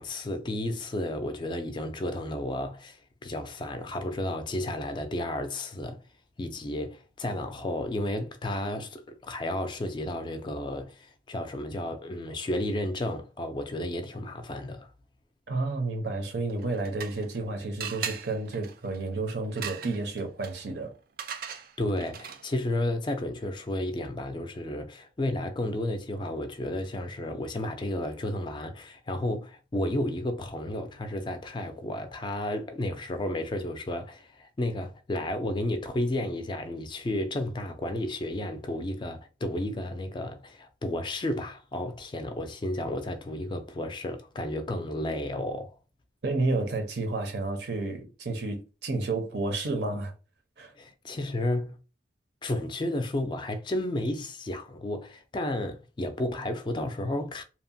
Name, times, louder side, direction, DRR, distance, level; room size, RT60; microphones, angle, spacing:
voice 1, 0.0-6.0 6.4-14.9 21.5-45.8 50.8-51.8 52.4-57.4, left 1 dB, 25° left, 0.3 m, -32 dB
voice 2, 15.5-20.9 46.2-50.1 50.6-50.7, right 2 dB, 70° right, 0.7 m, -31 dB
sound 1, 16.5-17.4 17.8-22.6, right 7 dB, 50° right, 0.3 m, -40 dB
2.8 x 2.1 x 2.6 m
head